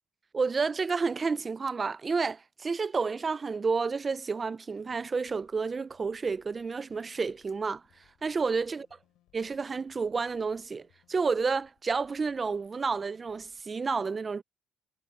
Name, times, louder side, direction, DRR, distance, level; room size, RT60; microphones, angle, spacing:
voice 1, 0.3-7.8 8.2-8.9 9.3-14.4, right 4 dB, 25° right, 0.6 m, -30 dB
sound 1, 4.7-13.6, left 15 dB, 75° left, 6.5 m, -69 dB
cardioid pair, 110°, 0 cm